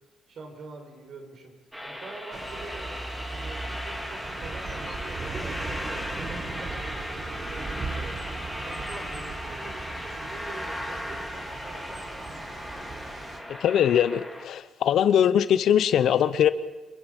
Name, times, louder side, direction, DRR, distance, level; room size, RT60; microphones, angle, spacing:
voice 1, 0.3-1.5 1.8-3.0 3.3-12.4, right 3 dB, 55° right, 4 dB, 5.4 m, -46 dB
sound 1, 1.7-14.4, equal, 5° right, 3.7 m, -37 dB
Thunder / Rain, 2.3-13.4, right 3 dB, 35° right, 3.5 m, -38 dB
voice 2, 13.6-16.5, left 9 dB, 70° left, 14 dB, 1.0 m, -21 dB
27.5 x 22.5 x 5.5 m, 1.2 s
cardioid pair, 90°, 0 cm